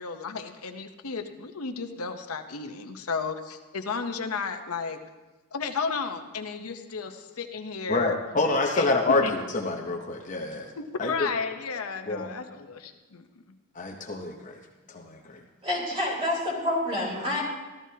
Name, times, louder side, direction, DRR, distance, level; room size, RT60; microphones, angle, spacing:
voice 1, 0.0-5.0 5.5-8.2 8.7-9.3 10.8-13.6, left 5 dB, 85° left, 6 dB, 0.8 m, -33 dB
voice 2, 7.9-10.7 11.0-11.3 12.1-12.3 13.7-14.6 14.9-15.4, left 3 dB, 35° left, 1 dB, 0.8 m, -27 dB
voice 3, 15.6-17.4, left 1 dB, 25° right, -3 dB, 3.5 m, -28 dB
14.5 x 13.0 x 2.8 m, 1.2 s
head